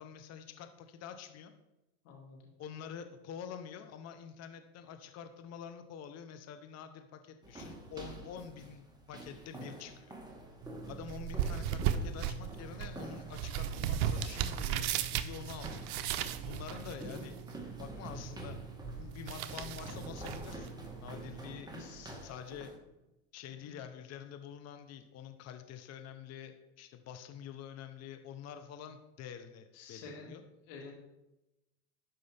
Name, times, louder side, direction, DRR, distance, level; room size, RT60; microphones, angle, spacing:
voice 1, 0.0-1.5 2.6-10.1 10.9-14.9 15.1-15.8 16.5-17.4 17.8-21.7 22.2-22.7 23.3-30.4, left 8 dB, 40° left, 8 dB, 0.9 m, -47 dB
voice 2, 2.0-2.5 21.7-22.1 23.6-23.8 29.7-30.3 30.7-30.9, left 4 dB, 75° left, -1 dB, 2.5 m, -49 dB
sound 1, 7.4-22.8, right 2 dB, 10° right, 1.6 m, -48 dB
sound 2, 10.6-21.6, right 9 dB, 60° right, 0.8 m, -37 dB
sound 3, 18.7-18.9 19.4-19.6 19.8-20.3 20.6-21.0 21.3-21.8 22.1-22.5 22.9-23.2 23.6-23.8, left 1 dB, 10° left, 3.3 m, -55 dB
12.5 x 5.4 x 3.5 m, 0.95 s
supercardioid pair, 100°, 39 cm